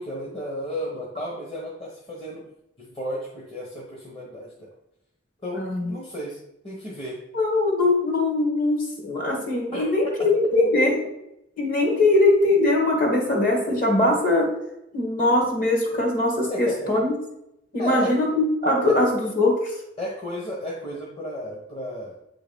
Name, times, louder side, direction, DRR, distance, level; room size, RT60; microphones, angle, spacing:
voice 1, 0.0-2.5 2.8-4.7 5.4-6.3 6.6-7.2 9.7-10.1 16.5-16.9 17.8-18.3 20.0-22.2, equal, 30° left, -3 dB, 1.3 m, -33 dB
voice 2, 5.5-5.9 7.3-11.0 11.6-14.5 14.9-17.1 17.7-19.7, left 2 dB, 50° left, 0 dB, 2.1 m, -21 dB
8.5 x 3.9 x 5.3 m, 0.84 s
head